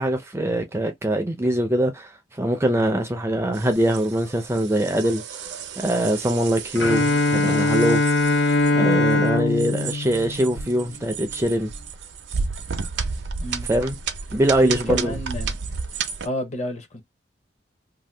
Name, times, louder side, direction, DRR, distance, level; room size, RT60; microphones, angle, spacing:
voice 1, 0.0-5.4 5.8-8.0 8.7-11.7 13.7-14.0 14.3-15.1, right 1 dB, 15° right, 0.4 m, -23 dB
sound 1, 3.5-16.3, right 5 dB, 65° right, 0.5 m, -32 dB
Bowed string instrument, 6.8-10.8, left 2 dB, 70° left, 0.5 m, -21 dB
voice 2, 14.6-15.6 16.2-17.0, left 1 dB, 40° left, 0.8 m, -30 dB
2.7 x 2.2 x 3.2 m
head